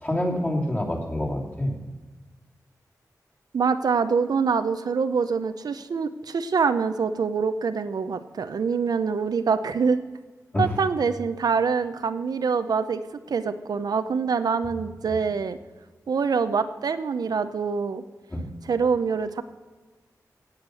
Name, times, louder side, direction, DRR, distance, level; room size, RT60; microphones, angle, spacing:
voice 1, 0.0-1.7 10.5-10.7 15.0-15.1 18.3-18.5, left 1 dB, 25° left, -2 dB, 3.2 m, -27 dB
voice 2, 3.5-10.0 10.6-13.0 13.3-15.6 16.1-18.0 18.7-19.4, right 5 dB, 85° right, 10 dB, 0.7 m, -25 dB
17.0 x 8.1 x 6.3 m, 1.3 s
wide cardioid pair, 115°, 6 cm